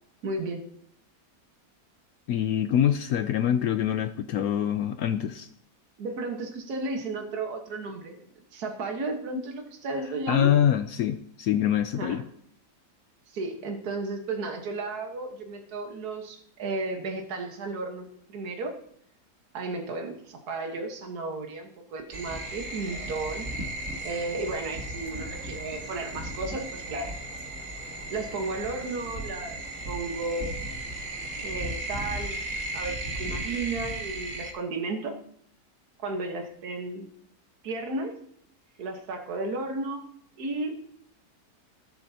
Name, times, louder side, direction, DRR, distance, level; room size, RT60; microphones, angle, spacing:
voice 1, 0.2-0.7 6.0-10.5 12.0-12.2 13.3-18.8 19.5-23.5 24.0-27.2 28.1-29.6 29.9-30.6 31.3-32.4 32.7-35.2 36.0-37.1 37.6-38.1 38.8-40.0 40.4-40.7, right 3 dB, 65° right, 4 dB, 1.8 m, -33 dB
voice 2, 2.3-5.5 10.3-12.2, left 10 dB, 70° left, 10 dB, 1.0 m, -25 dB
sound 1, 22.1-34.5, right 1 dB, 50° right, 2.0 m, -35 dB
17.5 x 7.4 x 2.8 m, 0.68 s
omnidirectional pair, 1.8 m